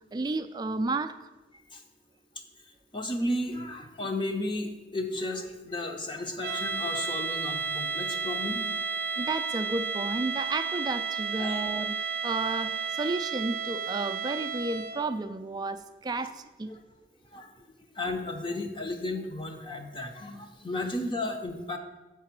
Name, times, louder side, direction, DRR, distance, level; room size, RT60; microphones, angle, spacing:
voice 1, 0.1-1.3 9.2-16.7, right 3 dB, 25° right, 10 dB, 0.3 m, -32 dB
voice 2, 2.9-8.6 11.4-11.6 16.7-16.8 17.3-17.5 18.0-21.8, left 1 dB, 30° left, 5 dB, 0.7 m, -33 dB
sound 1, 6.4-15.1, right 5 dB, 55° right, 0.7 m, -32 dB
7.4 x 4.7 x 6.0 m, 1.1 s
head